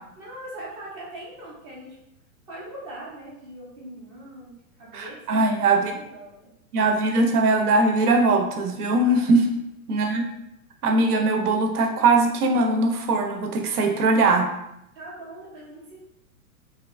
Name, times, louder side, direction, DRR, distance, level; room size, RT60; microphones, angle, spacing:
voice 1, 0.2-2.0 2.5-6.5 9.2-9.3 10.0-10.1 15.0-16.0, right 1 dB, 20° right, -5 dB, 0.4 m, -41 dB
voice 2, 4.9-5.9 6.7-9.5 9.9-10.2 10.8-14.5, right 2 dB, 80° right, 3 dB, 0.7 m, -21 dB
2.8 x 2.4 x 2.3 m, 0.82 s
hypercardioid pair, 135°, 45 cm